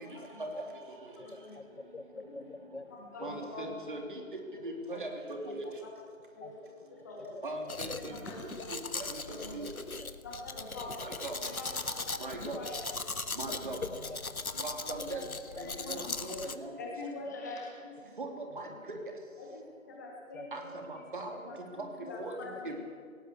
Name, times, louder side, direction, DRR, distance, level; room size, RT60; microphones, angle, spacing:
voice 1, 1.1-1.5 2.1-4.0 4.9-5.0 5.8-5.9 6.4-6.6 6.9-7.3 7.8-8.8 9.3-9.6 10.2-11.1 11.4-14.0 14.5-15.2 15.6-17.9 18.2-18.4 19.4-19.5 19.9-20.7 21.3-22.9, left 2 dB, 15° left, -2 dB, 2.1 m, -45 dB
voice 2, 1.8-2.9 3.2-3.5 5.5-5.6 6.4-6.5 7.6-7.7 9.6-9.7 12.9-13.0 13.9-14.4 15.2-15.6 20.3-20.4 22.7-22.8, left 3 dB, 55° left, 10 dB, 1.7 m, -46 dB
voice 3, 3.2-4.2 4.6-5.6 7.4-8.3 8.7-9.7 11.0-11.4 12.2-12.6 13.4-13.8 14.6-15.2 15.6-16.7 18.2-19.0 20.5-21.4 21.8-21.9 22.2-22.3 22.6-22.9, right 2 dB, 35° right, 3 dB, 3.4 m, -40 dB
Domestic sounds home sounds, 7.7-16.6, left 3 dB, 85° left, 1.5 m, -39 dB
18.5 x 18.5 x 8.4 m, 2.2 s
figure-of-eight pair, 165°, 42 cm